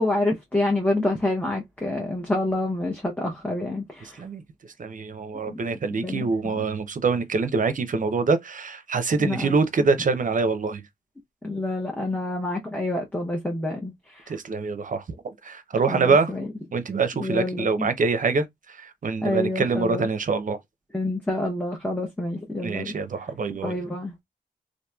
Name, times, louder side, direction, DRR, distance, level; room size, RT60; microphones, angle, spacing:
voice 1, 0.0-4.2 6.0-6.5 9.2-9.5 11.4-14.3 15.9-16.4 17.2-17.9 19.2-20.0 20.9-22.9 23.6-24.1, left 2 dB, 10° left, 0.8 m, -27 dB
voice 2, 4.0-4.4 4.8-10.9 14.3-16.3 16.7-20.6 22.6-23.8, right 4 dB, 50° right, 0.6 m, -25 dB
2.9 x 2.5 x 2.2 m
cardioid pair, 55°, 17 cm